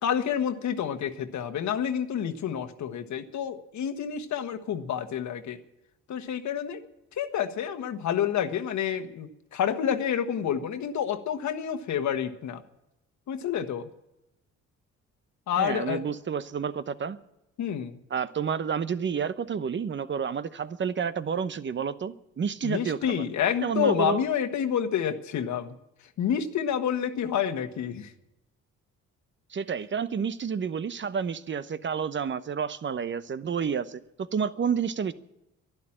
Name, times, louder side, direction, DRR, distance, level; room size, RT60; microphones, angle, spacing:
voice 1, 0.0-5.6 6.1-6.8 7.1-12.6 13.3-13.9 15.5-16.0 17.6-18.0 22.6-25.7 26.2-28.1, left 8 dB, 70° left, 1.4 m, -29 dB
voice 2, 15.6-17.2 18.1-23.2 23.6-24.2 29.5-35.1, right 6 dB, 40° right, 0.9 m, -30 dB
12.0 x 11.5 x 8.7 m
cardioid pair, 90°, 30 cm